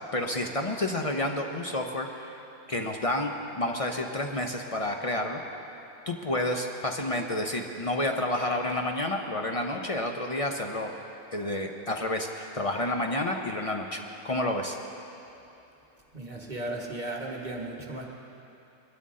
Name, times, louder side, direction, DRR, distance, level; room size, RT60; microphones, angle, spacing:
voice 1, 0.1-2.4 2.7-5.4 6.1-10.9 11.3-14.0 14.2-14.8, left 1 dB, 45° left, 3 dB, 0.4 m, -30 dB
voice 2, 16.1-18.1, right 2 dB, 30° right, -1 dB, 1.4 m, -35 dB
21.0 x 12.5 x 3.7 m, 2.9 s
omnidirectional pair, 1.6 m